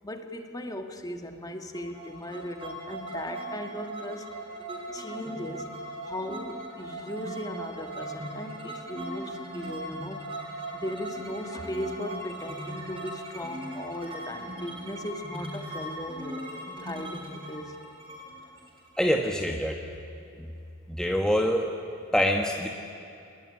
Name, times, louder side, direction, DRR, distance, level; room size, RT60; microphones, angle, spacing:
voice 1, 0.0-4.3 4.9-5.8 6.0-10.3 10.7-16.5 16.8-17.8, left 1 dB, 20° left, 5 dB, 1.8 m, -37 dB
sound 1, 1.7-19.4, right 1 dB, 30° right, 5.8 m, -39 dB
voice 2, 19.0-19.8 20.4-20.5 20.9-21.7 22.1-22.7, equal, 5° left, 2 dB, 1.3 m, -25 dB
25.0 x 21.0 x 10.0 m, 2.6 s
head